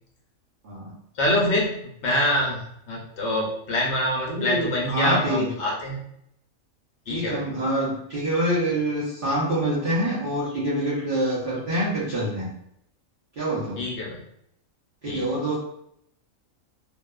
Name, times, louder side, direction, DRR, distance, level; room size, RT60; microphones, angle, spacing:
voice 1, 1.2-6.0 7.1-7.5 13.8-14.2 15.1-15.3, left 1 dB, 65° left, -2 dB, 0.8 m, -25 dB
voice 2, 4.3-5.5 7.1-12.5 13.4-13.9 15.0-15.6, right 1 dB, 50° right, -9 dB, 0.8 m, -26 dB
2.5 x 2.3 x 2.2 m, 0.73 s
omnidirectional pair, 1.4 m